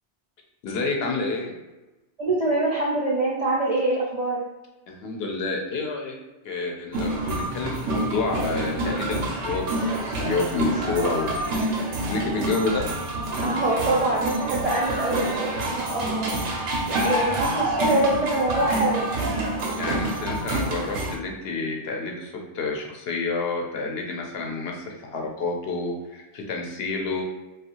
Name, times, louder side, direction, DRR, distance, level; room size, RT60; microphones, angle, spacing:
voice 1, 0.6-1.6 4.9-6.2 6.4-11.4 12.1-12.9 19.8-27.2, left 3 dB, 70° left, 1 dB, 0.7 m, -29 dB
voice 2, 2.2-4.4 13.4-16.3 17.0-19.0, right 2 dB, 60° right, -5 dB, 0.4 m, -24 dB
sound 1, 6.9-21.2, right 1 dB, 90° right, 0.9 m, -27 dB
2.6 x 2.3 x 2.8 m, 1.1 s
omnidirectional pair, 1.2 m